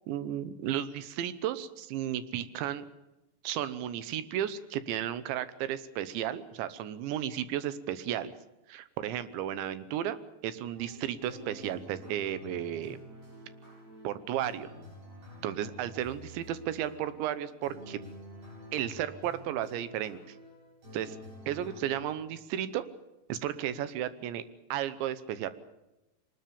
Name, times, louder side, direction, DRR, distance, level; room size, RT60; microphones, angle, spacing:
voice 1, 0.1-2.9 3.4-8.3 8.7-10.2 10.4-13.0 14.1-14.7 15.4-18.0 18.7-20.4 20.9-21.2 21.5-22.9 23.3-24.4 24.7-25.5, right 11 dB, 85° right, 13 dB, 3.3 m, -34 dB
sound 1, 10.7-22.0, equal, 55° right, 9.8 m, -49 dB
23.5 x 20.0 x 7.1 m, 0.96 s
omnidirectional pair, 5.1 m